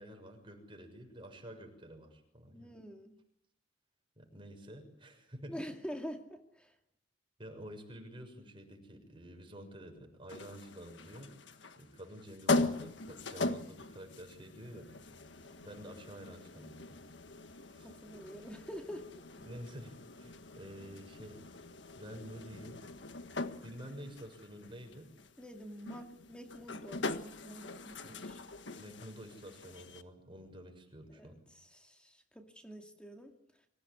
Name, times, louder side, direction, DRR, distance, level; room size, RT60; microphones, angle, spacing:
voice 1, 0.0-2.7 4.2-5.6 7.4-11.3 11.8-14.9 15.6-17.0 17.7-17.9 19.4-21.4 21.9-22.8 23.6-25.1 28.0-28.2 28.7-31.4, equal, 30° right, 4 dB, 6.7 m, -49 dB
voice 2, 2.5-3.2 5.5-6.8 17.8-19.1 25.4-28.4 31.1-33.3, equal, 5° left, 3 dB, 2.4 m, -47 dB
sound 1, 10.3-30.0, left 2 dB, 70° left, 1.6 m, -41 dB
26.0 x 16.5 x 10.0 m, 0.78 s
head